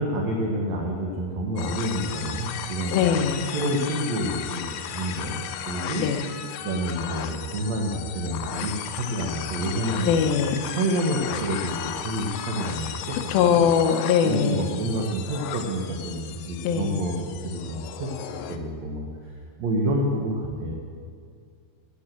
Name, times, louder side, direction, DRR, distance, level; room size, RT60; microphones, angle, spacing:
voice 1, 0.0-3.1 3.5-5.4 5.6-6.1 6.6-10.3 10.8-13.7 14.2-18.1 18.5-19.3 19.6-20.7, right 1 dB, 65° right, -1 dB, 1.7 m, -28 dB
sound 1, 1.6-18.6, left 9 dB, 90° left, 1.9 m, -35 dB
voice 2, 2.9-3.5 6.0-6.2 10.0-10.7 13.3-14.6 16.6-17.0, left 7 dB, 75° left, 5 dB, 2.5 m, -21 dB
16.0 x 6.1 x 7.8 m, 2.2 s
omnidirectional pair, 4.7 m